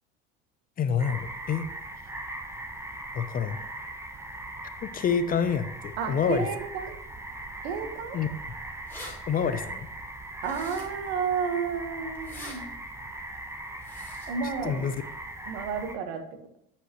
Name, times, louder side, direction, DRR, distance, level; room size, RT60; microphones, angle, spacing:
voice 1, 0.8-1.7 3.1-3.6 4.8-6.5 8.1-8.3 9.3-9.9 14.6-15.0, left 7 dB, 30° left, 11 dB, 0.5 m, -27 dB
sound 1, 1.0-16.0, right 1 dB, 10° right, 0.9 m, -40 dB
voice 2, 6.0-7.0 7.6-8.2 10.4-12.7 14.3-14.9 15.5-16.2, right 6 dB, 75° right, 6 dB, 1.3 m, -31 dB
sound 2, 8.9-9.1 10.4-11.1 12.1-12.6 13.8-14.3, left 2 dB, 5° left, 2.6 m, -43 dB
10.0 x 5.5 x 3.0 m, 0.75 s
hypercardioid pair, 95°, 30 cm